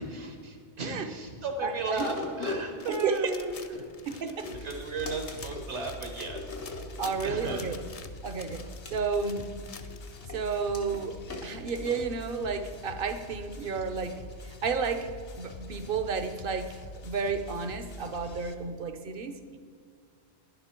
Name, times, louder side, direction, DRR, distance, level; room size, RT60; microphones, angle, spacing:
voice 1, 0.0-6.6 7.2-7.7, right 3 dB, 75° right, 3 dB, 1.5 m, -35 dB
sound 1, 1.9-3.8 4.3-5.7 6.3-7.9 8.5-12.7 13.2-13.3, left 3 dB, 80° left, 1.7 m, -41 dB
sound 2, 2.8-10.2, left 5 dB, 40° left, 0.5 m, -49 dB
voice 2, 4.1-4.5 7.0-7.8 8.2-8.6 8.9-9.5 10.3-15.1 15.4-19.6, right 5 dB, 55° right, 9 dB, 0.9 m, -32 dB
sound 3, 4.5-18.5, left 2 dB, 60° left, 1.1 m, -45 dB
11.0 x 11.0 x 4.4 m, 2.2 s
omnidirectional pair, 1.2 m